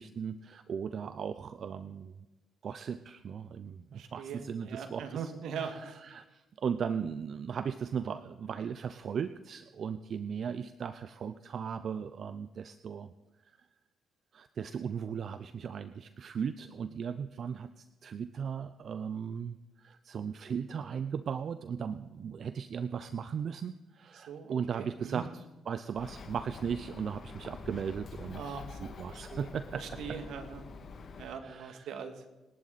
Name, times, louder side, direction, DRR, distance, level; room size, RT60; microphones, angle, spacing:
voice 1, 0.0-2.1 2.6-5.3 5.6-13.1 14.3-30.2 31.4-31.9, right 7 dB, 55° right, 12 dB, 0.7 m, -37 dB
voice 2, 3.9-6.0 24.1-25.2 28.4-30.6 31.2-32.3, right 6 dB, 80° right, 7 dB, 2.1 m, -42 dB
Bird, 25.9-31.4, left 4 dB, 55° left, 2.3 m, -46 dB
27.5 x 10.5 x 4.2 m, 1.1 s
cardioid pair, 90°, 0 cm